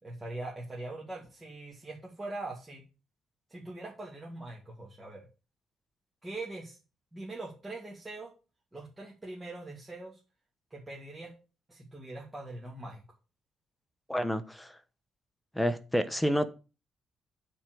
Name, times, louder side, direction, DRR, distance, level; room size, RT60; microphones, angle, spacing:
voice 1, 0.0-2.8 3.5-5.3 6.2-6.8 7.1-8.3 8.7-10.2 10.7-11.3 11.7-13.0, right 2 dB, 20° right, -3 dB, 2.4 m, -42 dB
voice 2, 14.1-14.8 15.5-16.5, equal, 5° left, 10 dB, 1.0 m, -29 dB
8.7 x 4.5 x 6.3 m, 0.33 s
cardioid pair, 90°, 0 cm